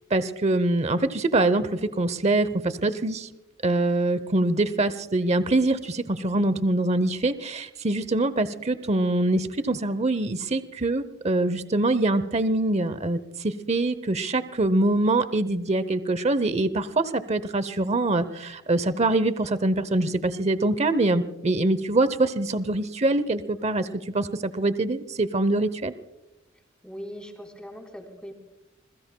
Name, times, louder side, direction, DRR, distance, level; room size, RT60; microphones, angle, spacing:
voice 1, 0.1-3.3 3.6-23.9 24.1-25.9, right 2 dB, 35° right, 14 dB, 0.7 m, -24 dB
voice 2, 26.8-28.3, equal, 5° left, 3 dB, 3.7 m, -40 dB
27.5 x 21.5 x 2.2 m, 0.96 s
head